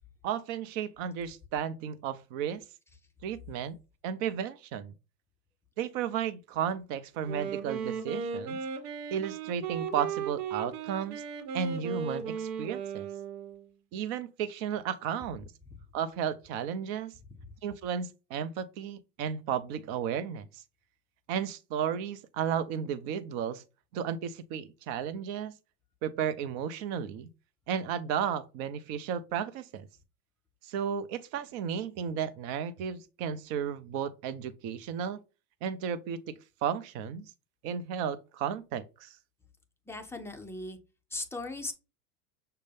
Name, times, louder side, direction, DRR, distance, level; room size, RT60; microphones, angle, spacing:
voice 1, 0.2-2.6 3.2-3.8 4.0-4.9 5.8-8.6 9.1-11.2 11.5-13.1 13.9-15.5 15.9-17.1 17.6-20.6 21.3-23.6 23.9-25.6 26.0-27.3 27.7-29.9 30.6-35.2 35.6-37.3 37.6-39.1, right 8 dB, 50° right, 0.7 m, -34 dB
Wind instrument woodwind instrument, 7.1-13.7, right 6 dB, 75° right, 1.1 m, -36 dB
voice 2, 39.9-40.8 41.1-41.7, left 2 dB, 5° left, 0.4 m, -38 dB
6.4 x 2.3 x 3.4 m
hypercardioid pair, 100°, 48 cm